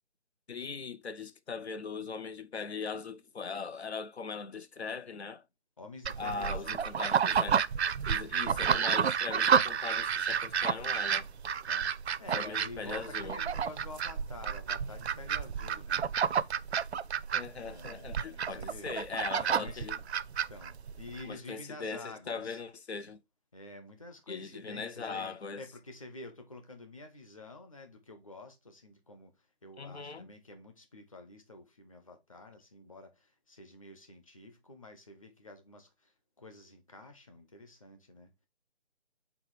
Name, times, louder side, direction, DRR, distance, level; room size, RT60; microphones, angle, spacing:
voice 1, 0.5-5.4 6.2-7.6 8.1-11.3 12.3-13.4 17.3-20.0 21.2-23.2 24.3-25.6 29.8-30.3, left 5 dB, 80° left, 0.8 m, -40 dB
voice 2, 5.8-6.8 11.6-11.9 12.2-16.0 17.5-18.9 19.3-19.9 20.5-22.6 23.5-29.3 29.6-36.1 36.4-38.3, left 2 dB, 30° left, 1.0 m, -49 dB
sound 1, 6.0-21.2, right 7 dB, 85° right, 0.5 m, -30 dB
4.9 x 4.1 x 4.8 m
figure-of-eight pair, 170°, 32 cm